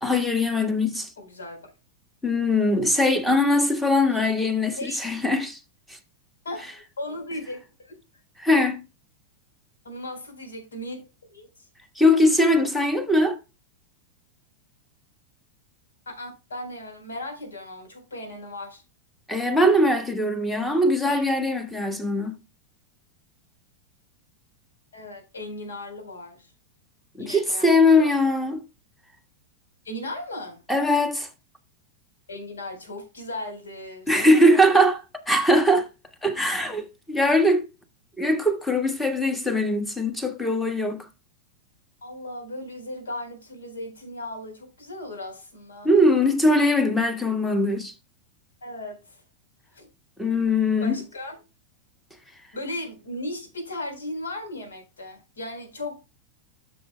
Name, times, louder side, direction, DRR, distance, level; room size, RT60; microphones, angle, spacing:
voice 1, 0.0-1.1 2.2-5.6 8.4-8.8 12.0-13.4 19.3-22.4 27.2-28.6 30.7-31.3 34.1-35.9 36.2-37.7 38.2-41.1 45.8-47.9 50.2-51.0, left 1 dB, 5° left, 1.5 m, -21 dB
voice 2, 1.2-1.7 4.1-4.3 4.8-5.0 6.4-8.0 9.8-11.0 11.3-11.5 16.1-18.8 24.9-26.5 27.2-28.2 29.8-30.6 32.3-34.8 42.0-45.9 48.6-49.2 49.7-49.9 50.8-51.4 52.5-56.0, left 1 dB, 70° left, 4.1 m, -37 dB
12.5 x 6.9 x 2.2 m
figure-of-eight pair, 90°, 0 cm